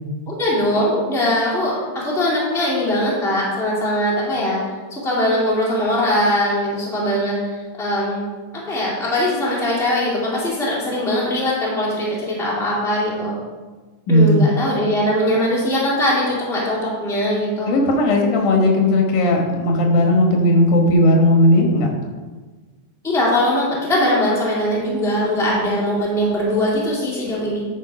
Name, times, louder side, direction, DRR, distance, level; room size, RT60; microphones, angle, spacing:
voice 1, 0.3-4.6 4.9-8.3 8.5-13.4 14.1-17.7 23.0-27.7, left 1 dB, ahead, -6 dB, 1.8 m, -21 dB
voice 2, 14.1-14.4 17.7-21.9, left 1 dB, 80° left, 1 dB, 2.9 m, -16 dB
10.5 x 4.7 x 4.9 m, 1.3 s
omnidirectional pair, 3.5 m